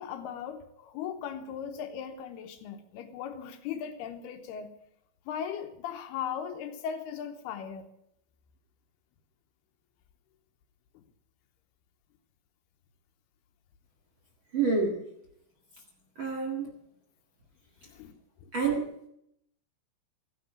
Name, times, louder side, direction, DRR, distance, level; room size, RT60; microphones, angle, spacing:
voice 1, 0.0-4.7 5.3-7.9 17.8-18.5, left 8 dB, 75° left, 7 dB, 2.7 m, -38 dB
voice 2, 14.5-15.0 16.1-16.7 18.5-18.9, right 4 dB, 40° right, -1 dB, 1.8 m, -28 dB
15.0 x 10.0 x 7.4 m, 0.75 s
omnidirectional pair, 5.0 m